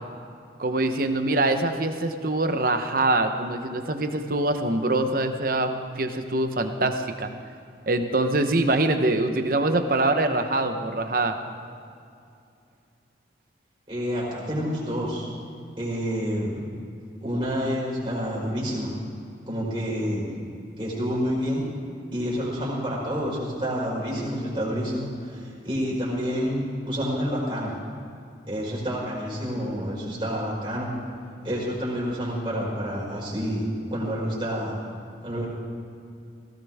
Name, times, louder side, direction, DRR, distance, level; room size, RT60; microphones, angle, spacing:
voice 1, 0.6-7.3 7.9-11.4, right 2 dB, 50° right, 7 dB, 1.0 m, -24 dB
voice 2, 13.9-15.3 15.8-16.6 17.2-18.9 19.5-20.3 20.8-21.6 22.1-27.7 28.5-30.9 31.4-33.6 33.9-34.8 35.2-35.5, equal, 30° right, -6 dB, 4.6 m, -28 dB
18.0 x 17.0 x 3.6 m, 2.5 s
head